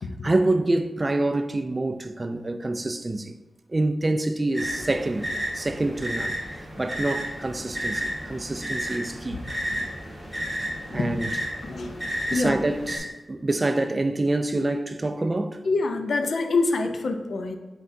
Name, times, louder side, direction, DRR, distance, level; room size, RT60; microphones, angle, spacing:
voice 1, 0.2-3.3 3.7-9.4 10.9-11.3 12.3-15.6, right 2 dB, 25° right, 0.3 m, -26 dB
sound 1, 4.5-13.0, equal, 5° left, 1.5 m, -32 dB
voice 2, 12.3-12.6 15.6-17.6, left 3 dB, 65° left, 0.5 m, -26 dB
7.7 x 4.6 x 2.7 m
wide cardioid pair, 115°, 0 cm